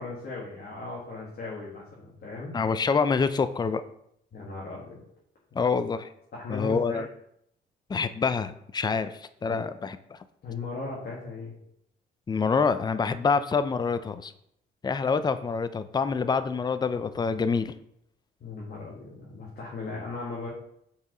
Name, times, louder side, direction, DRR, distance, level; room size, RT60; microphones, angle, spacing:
voice 1, 0.0-2.5 4.3-5.0 6.3-7.0 9.5-9.6 10.4-11.5 18.4-20.5, left 3 dB, 55° left, -5 dB, 1.8 m, -37 dB
voice 2, 2.5-3.8 5.5-6.1 6.5-7.1 7.9-10.2 12.3-14.3 14.8-17.7, left 5 dB, 20° left, 12 dB, 0.4 m, -26 dB
5.6 x 4.7 x 3.9 m, 0.73 s
cardioid pair, 90°, 20 cm